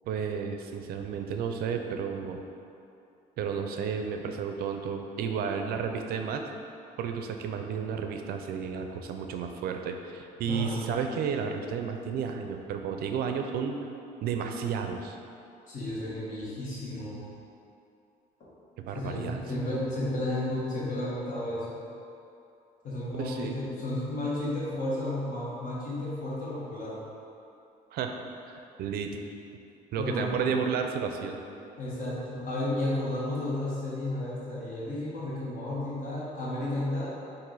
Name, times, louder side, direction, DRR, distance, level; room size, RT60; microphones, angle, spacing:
voice 1, 0.1-2.4 3.4-6.4 7.0-13.8 14.2-15.2 18.8-19.4 23.2-23.5 27.9-28.1 28.4-29.2 29.9-31.4, right 6 dB, 65° right, 5 dB, 0.4 m, -32 dB
voice 2, 10.5-10.9 15.7-17.2 18.9-21.8 22.8-27.0 30.0-30.4 31.8-37.2, left 1 dB, 50° left, -7 dB, 1.3 m, -32 dB
4.6 x 2.5 x 3.9 m, 2.7 s
cardioid pair, 110°, 17 cm